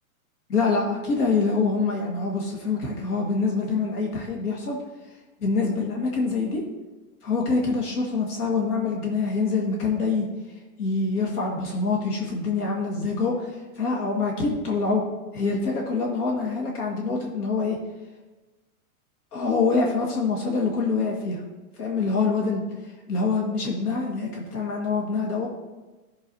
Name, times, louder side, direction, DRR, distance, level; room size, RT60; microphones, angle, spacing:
voice 1, 0.5-4.8 5.4-6.6 7.2-10.3 10.8-15.0 15.3-17.8 19.3-21.4 21.8-25.5, left 4 dB, 90° left, 0 dB, 1.8 m, -25 dB
13.0 x 6.4 x 2.7 m, 1.2 s
supercardioid pair, 155°, 44 cm